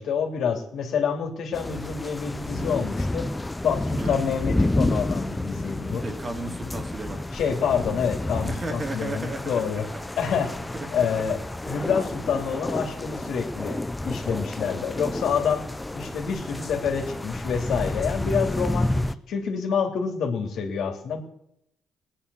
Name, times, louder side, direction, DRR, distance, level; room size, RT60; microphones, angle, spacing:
voice 1, 0.0-6.0 7.3-9.9 10.2-10.5 10.9-11.4 11.7-15.6 15.9-21.2, left 6 dB, 75° left, 3 dB, 2.9 m, -27 dB
sound 1, 1.5-19.1, left 1 dB, 15° left, 0.7 m, -30 dB
voice 2, 6.0-7.2 8.5-10.0 10.7-11.3, right 2 dB, 30° right, 4 dB, 2.5 m, -35 dB
19.0 x 10.0 x 7.0 m, 0.78 s
cardioid pair, 90°, 0 cm